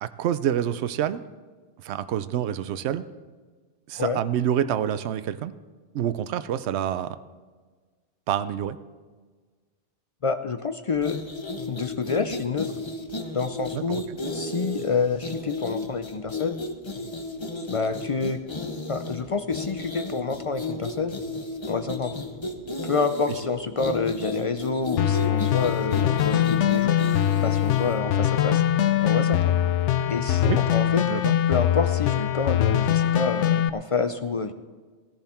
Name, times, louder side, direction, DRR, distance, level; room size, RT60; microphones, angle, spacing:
voice 1, 0.0-1.2 1.8-3.0 3.9-5.5 5.9-7.2 8.3-8.8 13.7-14.0 30.4-30.6 31.1-31.4, right 10 dB, 75° right, 13 dB, 0.9 m, -27 dB
voice 2, 10.2-11.2 11.7-12.7 13.3-14.0 14.3-16.6 17.7-18.4 18.9-21.2 21.7-22.1 22.8-27.0 27.4-28.6 29.0-29.6 30.0-31.0 31.5-34.5, left 4 dB, 55° left, 9 dB, 0.3 m, -28 dB
sound 1, 10.9-28.0, left 2 dB, 25° left, 0.9 m, -34 dB
sound 2, 25.0-33.7, left 11 dB, 80° left, 0.9 m, -22 dB
16.0 x 10.5 x 4.3 m, 1.4 s
omnidirectional pair, 1.2 m